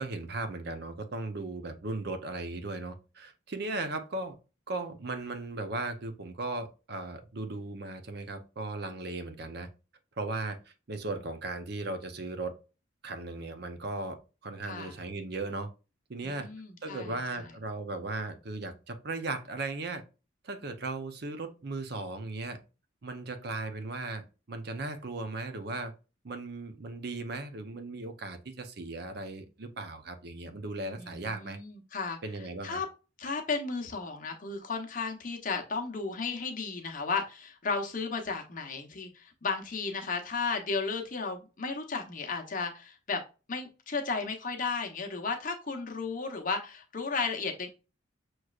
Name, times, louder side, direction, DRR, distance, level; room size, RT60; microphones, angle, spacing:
voice 1, 0.0-4.4 4.7-9.7 10.2-12.5 13.0-14.2 14.4-15.7 16.1-16.5 16.8-20.0 20.4-22.6 23.0-25.9 26.2-31.6 32.2-32.8, right 2 dB, 55° right, 8 dB, 0.7 m, -37 dB
voice 2, 14.6-15.0 16.2-17.5 31.0-32.2 32.6-32.9 33.2-43.2 43.5-47.7, left 4 dB, 45° left, 3 dB, 0.9 m, -34 dB
6.2 x 3.1 x 2.4 m, 0.31 s
head